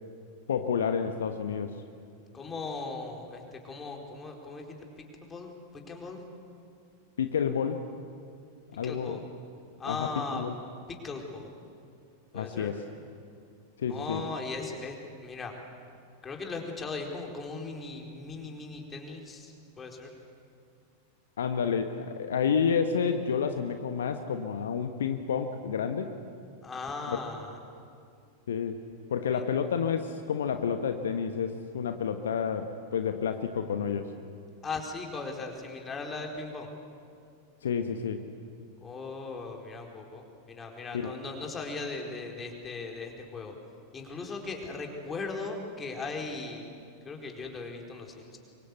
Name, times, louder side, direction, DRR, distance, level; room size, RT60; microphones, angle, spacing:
voice 1, 0.5-1.7 7.2-7.8 8.8-9.2 9.9-10.1 10.3-10.5 12.3-12.8 13.8-14.2 21.4-26.1 28.5-28.8 29.1-34.1 37.6-38.2 40.9-41.1, left 7 dB, 65° left, 7 dB, 1.2 m, -29 dB
voice 2, 2.3-4.8 5.2-6.3 8.8-9.3 9.8-10.4 10.9-11.5 12.3-12.7 13.9-15.5 16.2-20.1 26.6-27.6 29.3-29.4 34.6-36.7 38.8-43.6 43.9-46.7 47.0-48.4, left 3 dB, 20° left, 2 dB, 4.3 m, -38 dB
26.0 x 24.0 x 8.2 m, 2.3 s
figure-of-eight pair, 90°, 0 cm